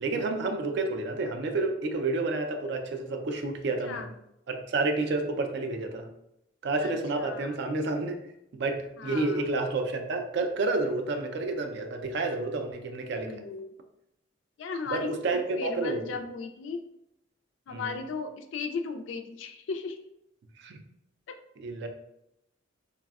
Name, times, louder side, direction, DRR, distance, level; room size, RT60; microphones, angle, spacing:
voice 1, 0.0-4.1 4.5-6.1 6.6-8.2 8.5-13.4 14.9-16.0 17.7-17.9 20.6-20.8 21.6-21.9, right 3 dB, 60° right, 5 dB, 0.4 m, -30 dB
voice 2, 6.8-7.6 9.0-9.4 13.2-13.7 14.6-16.8 17.7-20.0 21.3-21.4, left 4 dB, 70° left, 7 dB, 0.3 m, -36 dB
3.3 x 2.0 x 2.3 m, 0.82 s
head